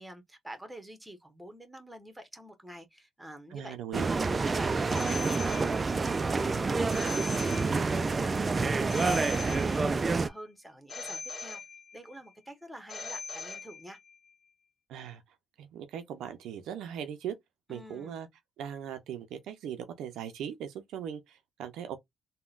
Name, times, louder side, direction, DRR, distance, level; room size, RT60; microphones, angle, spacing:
voice 1, 0.0-3.8 4.1-11.6 11.9-14.0 17.7-18.2, right 1 dB, 5° right, 0.9 m, -47 dB
voice 2, 3.5-4.1 14.9-15.2 15.6-17.3 17.7-18.3 18.6-22.0, right 9 dB, 85° right, 0.5 m, -39 dB
sound 1, 3.9-10.3, right 4 dB, 30° right, 0.3 m, -28 dB
Telephone, 4.9-6.2 6.9-8.2 8.9-10.2 10.9-12.2 12.9-14.1, left 4 dB, 50° left, 1.2 m, -41 dB
3.6 x 2.1 x 2.4 m
cardioid pair, 90°, 0 cm